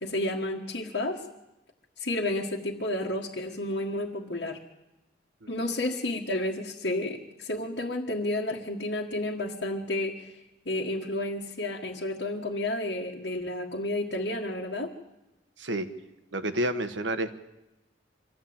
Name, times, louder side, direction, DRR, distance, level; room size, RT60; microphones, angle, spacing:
voice 1, 0.0-1.2 2.0-4.6 5.5-10.3 10.7-14.9, left 1 dB, 70° left, -3 dB, 1.7 m, -31 dB
voice 2, 16.3-17.3, right 1 dB, 85° right, 9 dB, 1.4 m, -29 dB
25.0 x 13.5 x 8.8 m, 0.96 s
head